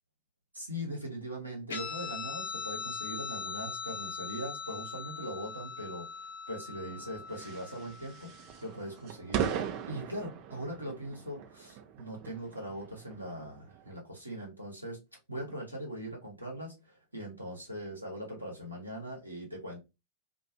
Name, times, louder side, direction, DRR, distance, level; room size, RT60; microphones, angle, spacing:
voice 1, 0.5-8.3 8.6-15.0 15.3-19.8, equal, 85° right, 0.9 m, -41 dB
Guitar, 1.7-8.6, left 5 dB, 65° left, 0.5 m, -41 dB
sound 1, 6.8-13.9, right 9 dB, 45° right, 0.4 m, -40 dB
2.3 x 2.2 x 2.7 m
figure-of-eight pair, 90°, 0 cm